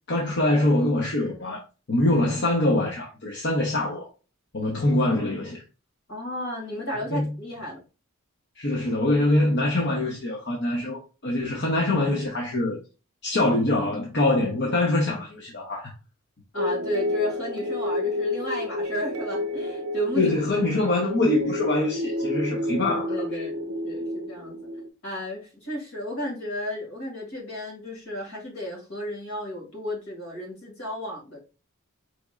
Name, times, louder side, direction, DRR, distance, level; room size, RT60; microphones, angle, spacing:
voice 1, 0.1-1.6 1.9-4.1 4.5-5.6 7.1-7.3 8.6-12.8 13.2-15.9 20.2-23.5, left 2 dB, 55° left, 0.8 m, -24 dB
voice 2, 6.1-7.8 16.5-20.3 20.8-20.9 23.0-24.6 25.0-31.4, left 1 dB, 75° left, 2.2 m, -33 dB
sound 1, 16.6-24.9, left 1 dB, 90° right, 0.6 m, -30 dB
5.0 x 3.0 x 2.4 m
head